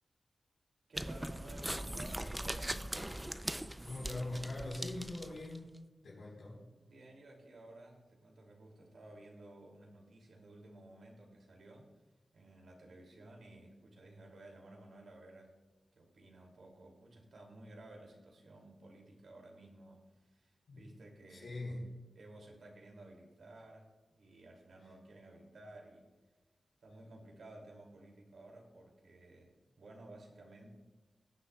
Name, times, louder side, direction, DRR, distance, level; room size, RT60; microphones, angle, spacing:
sound 1, 0.9-5.6, right 1 dB, 10° right, 0.4 m, -40 dB
voice 1, 0.9-3.0 6.8-11.9 12.3-15.6 15.9-21.7 22.1-26.1 26.8-30.7, right 2 dB, 75° right, 0 dB, 2.5 m, -55 dB
voice 2, 3.8-5.7 6.0-6.6 20.7-20.9 21.3-21.8, left 2 dB, 90° left, -5 dB, 3.9 m, -42 dB
20.0 x 9.6 x 2.3 m, 1.2 s
wide cardioid pair, 175°, 0 cm